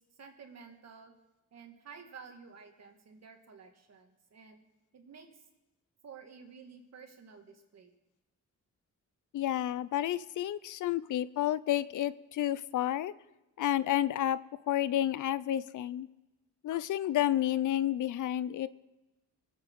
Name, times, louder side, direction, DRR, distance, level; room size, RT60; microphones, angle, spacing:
voice 1, 0.2-1.1 1.5-4.6 4.9-5.4 6.0-7.9 11.0-11.1, right 6 dB, 55° right, 3 dB, 2.3 m, -52 dB
voice 2, 9.3-13.1 13.6-14.4 14.7-16.1 16.6-18.7, left 12 dB, 75° left, 17 dB, 0.6 m, -30 dB
24.0 x 8.2 x 4.8 m, 1.0 s
cardioid pair, 95°, 31 cm